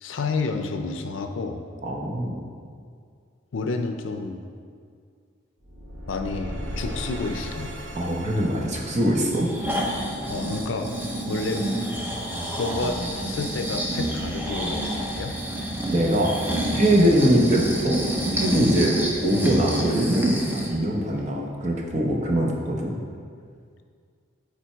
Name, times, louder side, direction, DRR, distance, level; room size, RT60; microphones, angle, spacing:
voice 1, 0.0-1.6 3.5-4.4 6.1-7.7 10.3-10.9 11.3-11.7 12.6-15.4, left 3 dB, 80° left, 6 dB, 0.5 m, -30 dB
voice 2, 1.8-2.4 7.9-9.5 15.9-16.3 16.7-18.0 18.3-18.9 19.2-22.9, equal, 35° right, -2 dB, 0.9 m, -22 dB
sound 1, 5.6-10.7, equal, 80° right, 1.0 m, -37 dB
Breathing, 9.3-20.7 21.2-21.3, right 1 dB, 10° right, 0.7 m, -28 dB
7.3 x 4.4 x 4.5 m, 2.2 s
head